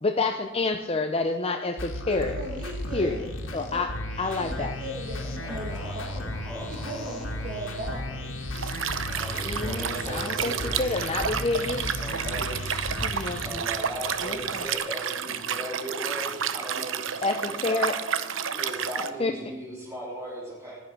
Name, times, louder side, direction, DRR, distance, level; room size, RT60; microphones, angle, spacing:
voice 1, 0.0-2.3 2.9-3.3 3.5-3.9 4.2-4.7 9.4-11.9 13.0-13.6 14.2-14.7 17.2-18.0 19.2-19.3, left 3 dB, 30° left, 5 dB, 0.7 m, -28 dB
sound 1, 1.8-13.5, left 1 dB, 85° left, 2.2 m, -35 dB
voice 2, 2.1-3.2 3.5-3.8 4.3-6.3 6.7-8.1, equal, 45° right, 0 dB, 1.8 m, -37 dB
sound 2, 5.0-14.7, left 1 dB, 65° left, 1.8 m, -48 dB
voice 3, 5.1-7.7 8.0-8.1 9.1-11.2 12.0-12.8 13.4-17.9 18.5-20.8, right 1 dB, 15° right, -8 dB, 3.3 m, -38 dB
Liquid, 8.5-19.1, right 8 dB, 75° right, 0.8 m, -31 dB
15.0 x 10.0 x 6.1 m, 1.1 s
head